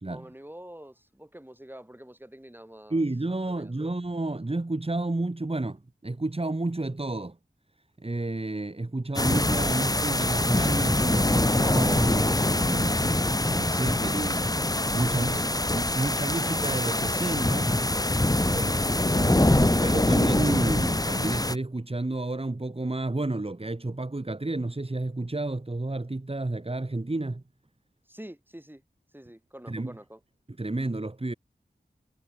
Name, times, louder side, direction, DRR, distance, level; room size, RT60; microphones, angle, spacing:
voice 1, 0.1-3.1 3.5-3.9 18.4-18.7 28.1-28.8 29.1-30.2, right 1 dB, 10° right, 5.5 m, -46 dB
voice 2, 2.9-7.4 8.0-13.2 13.5-14.5 14.9-15.5 15.7-17.8 18.5-27.4 29.7-29.9 30.6-31.3, right 2 dB, 30° right, 2.3 m, -31 dB
sound 1, 9.1-21.5, left 1 dB, 20° left, 1.7 m, -24 dB
wide cardioid pair, 60°, 18 cm